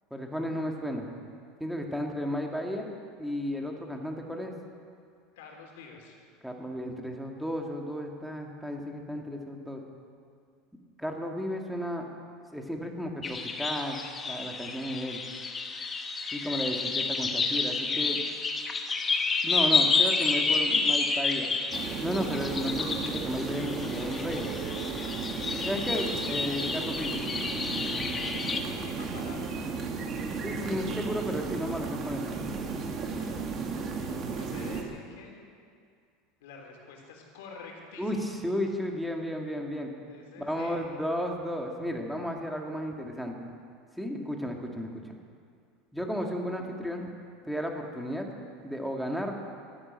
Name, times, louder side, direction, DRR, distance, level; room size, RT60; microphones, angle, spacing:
voice 1, 0.1-1.1 1.6-2.9 3.2-4.5 6.4-9.8 11.0-12.1 12.5-15.2 16.3-18.2 19.4-21.6 22.0-24.5 25.6-27.2 30.4-32.4 38.0-39.9 40.4-43.3 44.0-45.2 45.9-47.1 47.5-48.3 48.6-49.3, equal, ahead, 1 dB, 1.8 m, -33 dB
voice 2, 5.3-6.2 28.6-29.6 33.1-33.4 34.3-35.4 36.4-38.2 40.1-40.8, left 4 dB, 90° left, 1 dB, 3.6 m, -47 dB
sound 1, 13.2-28.6, left 4 dB, 20° left, 1.1 m, -30 dB
sound 2, 21.7-34.8, right 4 dB, 35° right, 1.9 m, -34 dB
13.0 x 11.5 x 9.5 m, 2.3 s
supercardioid pair, 150°, 0 cm